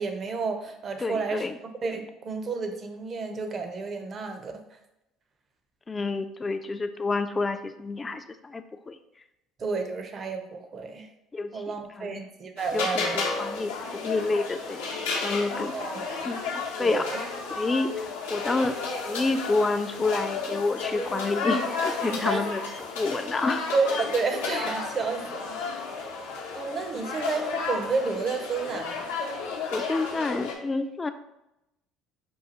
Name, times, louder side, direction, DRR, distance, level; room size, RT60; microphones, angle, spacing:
voice 1, 0.0-1.5 1.8-4.5 9.6-11.1 11.5-13.2 15.7-16.3 16.8-17.2 22.2-22.4 23.7-25.6 26.5-29.0, right 4 dB, 40° right, 6 dB, 0.6 m, -30 dB
voice 2, 1.0-1.5 5.9-9.0 11.3-11.6 12.0-12.2 12.7-14.8 15.2-15.9 16.3-17.0 17.6-18.7 19.0-22.6 23.0-23.6 29.7-31.1, left 3 dB, 25° left, 9 dB, 0.3 m, -28 dB
sound 1, 12.6-30.5, left 4 dB, 85° left, 0.7 m, -32 dB
5.4 x 2.3 x 2.8 m, 0.88 s
hypercardioid pair, 70°, 0 cm